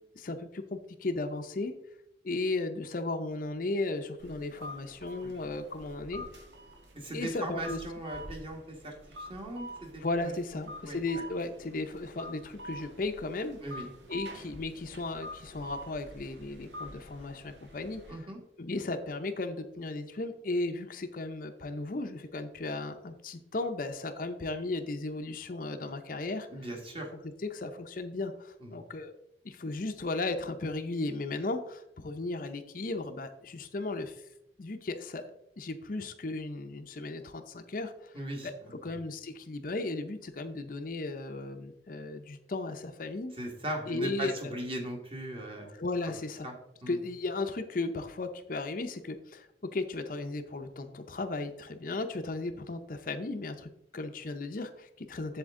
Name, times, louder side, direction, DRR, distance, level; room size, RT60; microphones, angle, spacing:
voice 1, 0.0-1.8 2.2-6.3 7.1-7.8 10.0-13.8 14.1-18.2 18.6-26.7 27.4-29.1 29.4-34.2 34.6-38.2 38.4-43.4 43.9-44.5 45.8-46.5 46.9-55.4, left 2 dB, 50° left, 7 dB, 0.6 m, -35 dB
sound 1, 4.2-18.1, equal, 80° right, 1.6 m, -47 dB
voice 2, 6.9-11.2 13.6-13.9 18.1-18.4 26.5-27.1 28.6-28.8 38.1-38.9 43.3-45.7 46.4-46.5 46.8-47.0, right 1 dB, 30° right, 1 dB, 1.7 m, -39 dB
7.8 x 7.1 x 3.6 m, 0.82 s
head